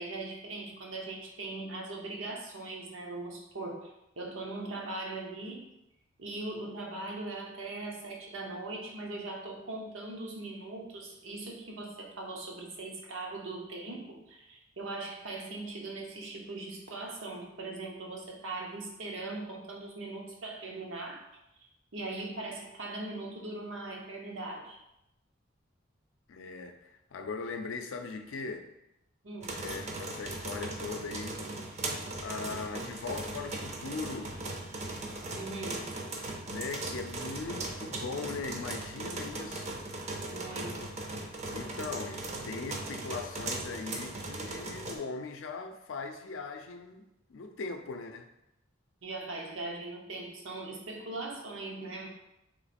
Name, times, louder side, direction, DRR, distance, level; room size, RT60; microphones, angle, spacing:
voice 1, 0.0-5.7 6.2-21.2 21.9-24.8 29.2-29.6 35.3-35.9 40.3-40.8 49.0-52.1, right 2 dB, 85° right, -1 dB, 0.9 m, -40 dB
voice 2, 26.3-28.7 29.6-31.4 32.2-34.4 36.5-39.8 40.8-40.9 41.5-48.3, left 4 dB, 80° left, 6 dB, 0.5 m, -40 dB
sound 1, 29.4-45.0, right 2 dB, 35° right, 0.5 m, -38 dB
3.1 x 3.0 x 4.2 m, 0.87 s
head